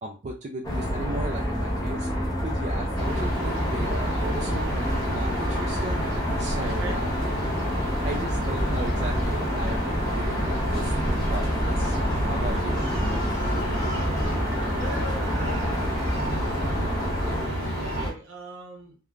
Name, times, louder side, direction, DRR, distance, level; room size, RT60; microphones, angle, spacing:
voice 1, 0.0-4.7 5.1-6.0 6.4-7.1 8.0-10.9 11.3-12.0 12.3-12.8, right 2 dB, 35° right, 0 dB, 0.3 m, -36 dB
sound 1, 0.6-17.5, equal, 20° left, 0.7 m, -28 dB
sound 2, 2.9-18.1, equal, 50° left, 1.2 m, -30 dB
voice 2, 6.6-7.0 12.5-12.6 14.7-16.0 17.8-19.0, right 1 dB, 70° right, 2 dB, 0.8 m, -39 dB
3.1 x 2.1 x 2.3 m, 0.34 s
head